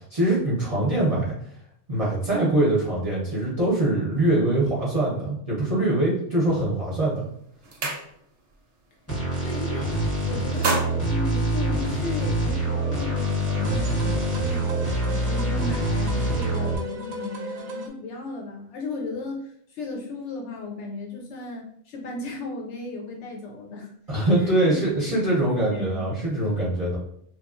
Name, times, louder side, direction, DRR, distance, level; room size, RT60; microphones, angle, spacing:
voice 1, 0.1-1.3 1.9-7.3 24.1-27.0, right 1 dB, 35° right, -7 dB, 0.6 m, -23 dB
sound 1, 6.8-7.0 7.4-8.5 8.9-9.1 9.4-10.0 10.3-12.2, right 3 dB, 65° right, 0.9 m, -31 dB
sound 2, 9.1-16.8, right 1 dB, 15° left, 0.7 m, -25 dB
voice 2, 9.4-9.9 10.2-14.7 15.1-23.9 24.4-24.8 25.7-26.1, left 3 dB, 70° left, 0 dB, 0.8 m, -35 dB
sound 3, 12.3-17.9, right 1 dB, 80° right, 1.0 m, -36 dB
3.0 x 2.3 x 2.4 m, 0.69 s
omnidirectional pair, 1.4 m